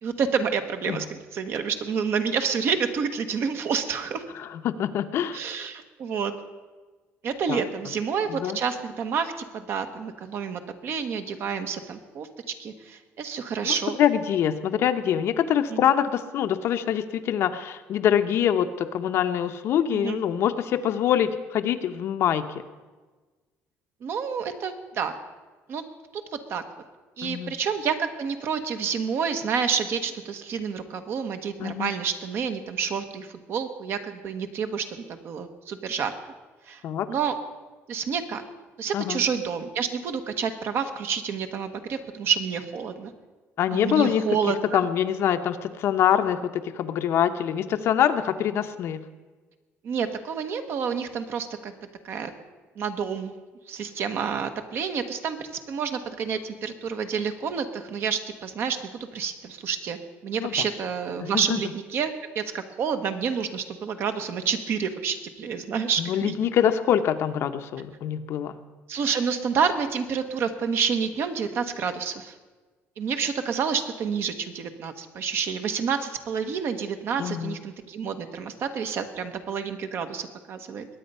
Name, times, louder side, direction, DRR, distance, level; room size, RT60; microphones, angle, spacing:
voice 1, 0.0-4.2 5.3-6.3 7.2-12.3 12.6-14.0 15.7-15.9 19.9-20.2 24.0-25.1 25.7-25.8 26.5-26.6 27.2-36.1 36.7-36.8 37.1-37.3 37.9-38.4 38.8-43.1 43.7-44.8 49.8-51.7 52.0-52.3 52.8-53.3 53.7-66.3 68.9-72.3 73.0-80.9, right 6 dB, 50° right, 8 dB, 1.2 m, -29 dB
voice 2, 4.4-5.4 7.5-7.6 8.3-8.6 13.6-22.5 27.2-27.5 31.6-31.9 36.8-37.1 38.9-39.2 43.6-44.2 44.7-49.0 60.4-60.5 61.2-61.6 66.0-68.6 77.2-77.6, left 9 dB, 55° left, 8 dB, 0.8 m, -24 dB
21.5 x 9.1 x 5.5 m, 1.3 s
cardioid pair, 160°, 5 cm